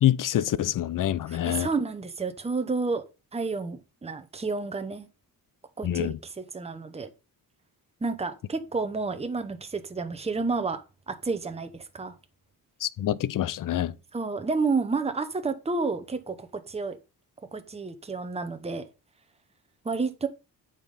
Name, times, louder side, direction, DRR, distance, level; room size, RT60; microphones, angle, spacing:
voice 1, 0.0-1.7 5.8-6.2 12.8-13.9, left 12 dB, 55° left, 0.6 m, -26 dB
voice 2, 1.3-3.0 3.3-5.1 5.8-7.1 8.0-10.8 11.1-12.1 14.1-17.0 17.5-18.9 19.8-20.3, right 4 dB, 15° right, 0.9 m, -30 dB
8.8 x 5.3 x 4.1 m
cardioid pair, 110°, 39 cm